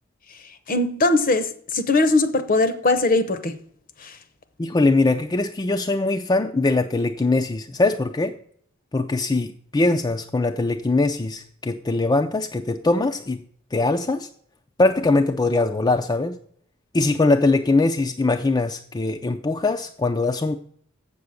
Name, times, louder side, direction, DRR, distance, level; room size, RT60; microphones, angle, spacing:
voice 1, 0.7-3.5 4.0-4.1, left 2 dB, 45° left, 0.8 m, -20 dB
voice 2, 4.6-8.3 8.9-13.4 13.7-14.3 14.8-16.4 16.9-20.6, left 2 dB, 20° left, 0.4 m, -21 dB
7.7 x 6.9 x 6.4 m
head